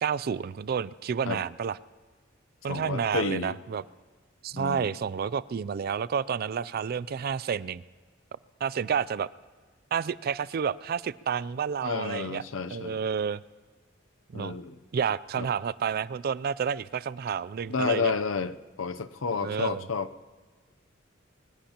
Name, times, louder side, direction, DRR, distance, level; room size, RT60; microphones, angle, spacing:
voice 1, 0.0-1.8 2.6-3.8 4.4-7.8 8.6-9.3 9.9-12.4 12.7-13.4 14.3-14.6 14.9-18.1 19.4-19.9, right 7 dB, 50° right, 19 dB, 0.4 m, -30 dB
voice 2, 2.7-3.6 4.5-4.9 11.8-13.0 14.3-14.8 15.4-15.5 17.7-20.1, left 5 dB, 80° left, 11 dB, 0.7 m, -31 dB
22.5 x 20.5 x 2.9 m, 1.5 s
head